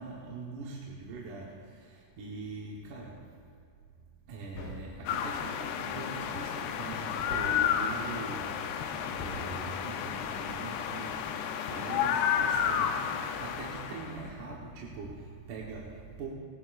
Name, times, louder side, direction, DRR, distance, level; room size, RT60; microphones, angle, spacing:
voice 1, 0.0-3.4 4.2-16.3, right 4 dB, 60° right, -3 dB, 2.4 m, -42 dB
sound 1, 4.5-5.1 7.3-7.8 9.2-9.6, left 2 dB, 65° left, 3.3 m, -43 dB
sound 2, 5.1-14.2, left 8 dB, 85° left, 2.9 m, -32 dB
20.0 x 19.0 x 2.6 m, 2.2 s
omnidirectional pair, 4.7 m